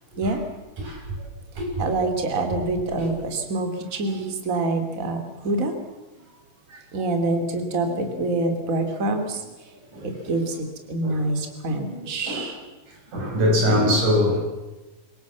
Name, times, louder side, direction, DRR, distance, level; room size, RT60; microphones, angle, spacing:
voice 1, 1.8-5.7 6.7-9.4 10.0-12.6, right 2 dB, 25° right, 6 dB, 2.7 m, -26 dB
voice 2, 11.9-12.4 13.1-14.4, left 1 dB, 65° right, 0 dB, 7.2 m, -23 dB
27.0 x 17.5 x 7.3 m, 1.1 s
omnidirectional pair, 3.8 m